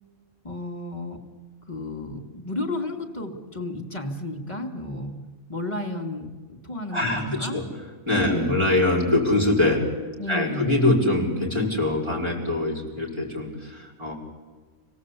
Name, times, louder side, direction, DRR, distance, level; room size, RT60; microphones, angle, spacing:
voice 1, 0.4-1.2 1.7-5.2 5.5-7.6 8.3-8.6 10.2-10.7, left 1 dB, 25° left, 2 dB, 2.5 m, -32 dB
voice 2, 6.9-7.6 8.1-9.8 10.3-14.1, left 2 dB, 20° right, -2 dB, 5.1 m, -23 dB
26.5 x 17.5 x 8.4 m, 1.4 s
omnidirectional pair, 1.3 m